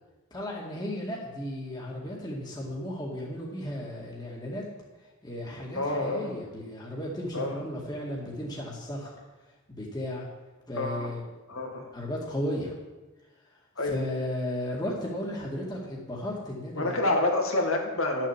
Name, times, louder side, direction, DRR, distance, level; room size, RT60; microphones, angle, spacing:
voice 1, 0.3-4.7 5.0-9.2 9.7-10.2 10.7-11.2 11.9-12.8 13.5-17.0, left 1 dB, 20° left, -3 dB, 2.1 m, -35 dB
voice 2, 5.7-6.3 7.3-7.5 10.8-11.1 11.5-11.9 13.8-14.0 16.8-18.3, left 2 dB, 75° left, 2 dB, 2.1 m, -28 dB
11.0 x 7.5 x 7.3 m, 1.2 s
head